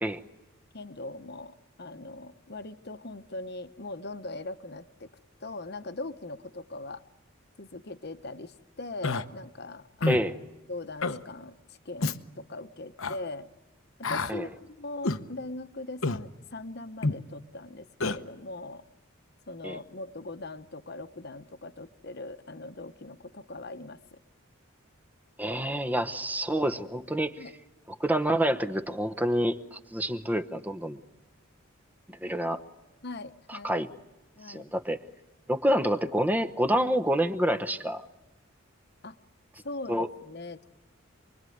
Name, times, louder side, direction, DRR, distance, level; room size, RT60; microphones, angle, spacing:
voice 1, 0.7-5.1 5.4-7.0 7.6-10.2 10.7-13.5 14.1-18.8 19.5-24.2 27.4-27.5 33.0-33.7 34.4-34.7 39.0-39.2 39.6-40.6, left 2 dB, 50° left, 10 dB, 1.1 m, -40 dB
Human voice, 9.0-9.2 10.0-10.3 11.0-11.2 12.0-12.2 13.0-13.2 14.0-14.3 15.0-15.2 16.0-16.2 17.0-17.2 18.0-18.2, left 3 dB, 75° left, 1.0 m, -28 dB
voice 2, 10.1-10.4 14.3-14.4 19.6-19.8 25.4-27.5 28.0-31.0 32.1-32.6 33.5-33.9 34.5-35.0 35.5-38.0 39.9-40.1, equal, 10° right, 10 dB, 1.0 m, -28 dB
28.0 x 21.5 x 9.4 m, 1.1 s
head